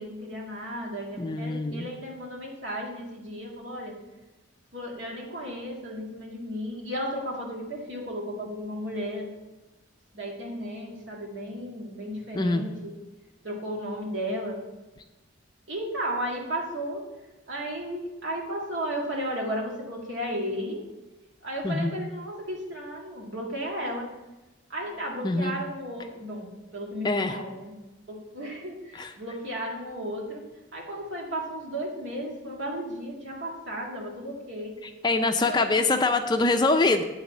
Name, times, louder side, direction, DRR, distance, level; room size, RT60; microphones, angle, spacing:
voice 1, 0.0-3.9 4.7-9.3 10.1-12.9 13.4-14.6 15.7-17.0 17.5-20.8 21.4-24.1 24.7-27.7 28.1-30.4 30.7-34.8 35.5-35.8, equal, 70° right, -2 dB, 2.1 m, -34 dB
voice 2, 1.2-1.9 12.3-12.6 21.6-21.9 25.2-25.6 27.0-27.4 28.9-29.1 35.0-37.0, left 3 dB, 20° left, 5 dB, 0.5 m, -24 dB
9.0 x 4.1 x 7.2 m, 1.1 s
head